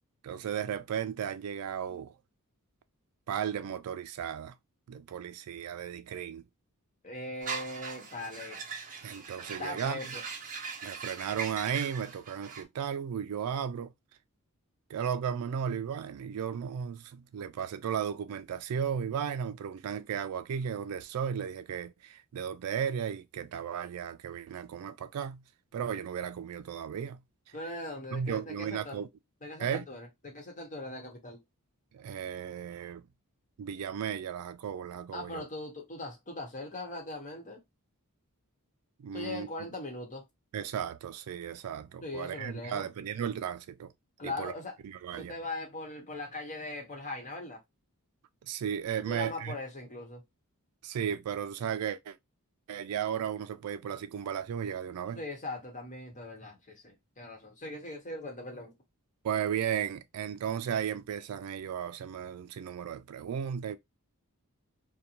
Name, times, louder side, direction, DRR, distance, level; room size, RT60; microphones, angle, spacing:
voice 1, 0.2-2.1 3.3-4.5 4.9-6.4 9.0-10.1 10.8-13.9 14.9-25.4 25.7-27.2 28.1-29.1 29.6-29.9 31.9-33.0 33.6-35.4 39.0-39.7 40.5-43.9 44.2-44.5 44.8-45.3 48.4-49.6 50.8-52.2 52.7-55.2 59.2-63.8, right 8 dB, 75° right, 0.3 m, -35 dB
voice 2, 7.0-8.6 9.6-10.2 27.5-29.0 29.4-31.4 35.1-37.6 39.1-40.2 42.0-42.9 44.2-44.7 45.2-47.6 49.1-50.2 55.1-58.7, left 2 dB, 35° left, 1.0 m, -40 dB
sound 1, 7.4-12.6, right 5 dB, 35° right, 0.7 m, -40 dB
2.6 x 2.2 x 2.8 m
head